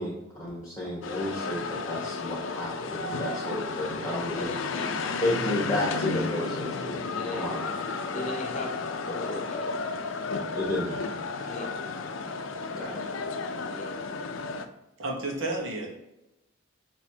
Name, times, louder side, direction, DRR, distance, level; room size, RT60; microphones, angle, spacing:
voice 1, 0.0-4.5 5.2-7.0 7.3-7.7 10.5-11.6 12.8-13.0, left 1 dB, 15° left, -6 dB, 1.1 m, -32 dB
sound 1, 1.0-14.7, left 4 dB, 85° left, 0.5 m, -33 dB
voice 2, 4.4-5.4 7.1-7.5 8.1-9.7 11.5-11.8 13.6-14.0, left 2 dB, 40° left, 3 dB, 0.8 m, -38 dB
voice 3, 15.0-15.9, right 2 dB, 85° right, 0 dB, 1.2 m, -31 dB
6.1 x 2.9 x 2.8 m, 0.95 s
head